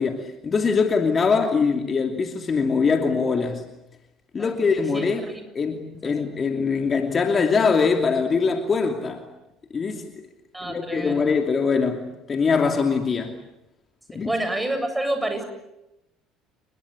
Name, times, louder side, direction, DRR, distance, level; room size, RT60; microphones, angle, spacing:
voice 1, 0.0-3.6 4.3-5.3 5.5-9.2 9.7-10.1 10.6-13.4 14.1-14.3, left 5 dB, 30° left, 2.8 m, -22 dB
voice 2, 4.9-5.4 6.0-6.1 10.5-11.3 14.2-15.4, right 1 dB, 10° right, 7.8 m, -28 dB
30.0 x 22.5 x 8.3 m
figure-of-eight pair, 60°, 0 cm